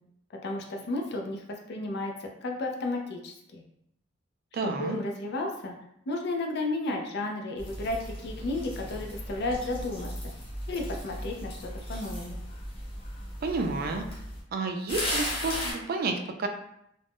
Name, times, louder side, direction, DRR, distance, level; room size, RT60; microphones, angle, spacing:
voice 1, 0.4-2.1 2.4-3.6 4.6-5.7 6.1-10.1 10.7-11.6 11.9-12.4, left 2 dB, 60° left, 2 dB, 0.5 m, -33 dB
voice 2, 4.5-5.0 13.4-14.1 14.5-16.5, right 3 dB, 50° right, 5 dB, 0.3 m, -30 dB
sound 1, 7.6-14.4 14.9-15.7, left 1 dB, 30° left, 0.8 m, -36 dB
2.4 x 2.1 x 3.4 m, 0.76 s
head